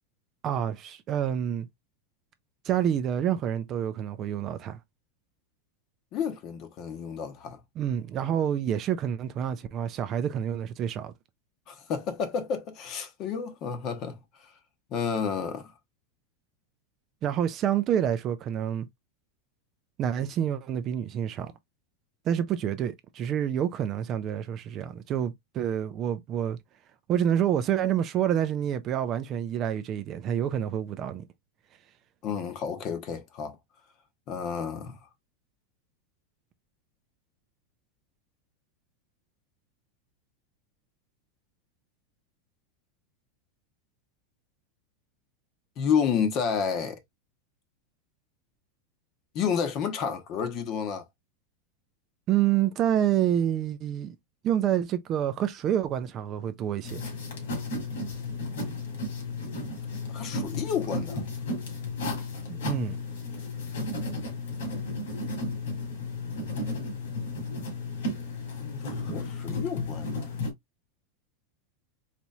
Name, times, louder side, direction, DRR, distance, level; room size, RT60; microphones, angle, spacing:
voice 1, 0.4-1.7 2.6-4.8 7.8-11.1 17.2-18.9 20.0-21.5 22.3-26.6 27.1-31.3 52.3-54.2 54.4-57.0 62.5-63.0, right 10 dB, 30° right, 0.4 m, -28 dB
voice 2, 6.1-7.6 11.7-14.2 14.9-15.7 32.2-33.6 34.3-35.0 45.8-47.0 49.3-51.0 60.1-61.2 68.6-70.3, left 7 dB, 35° left, 0.8 m, -30 dB
Pen writing, 56.8-70.5, left 2 dB, 90° left, 2.1 m, -33 dB
4.1 x 3.0 x 2.3 m
supercardioid pair, 165°, 0 cm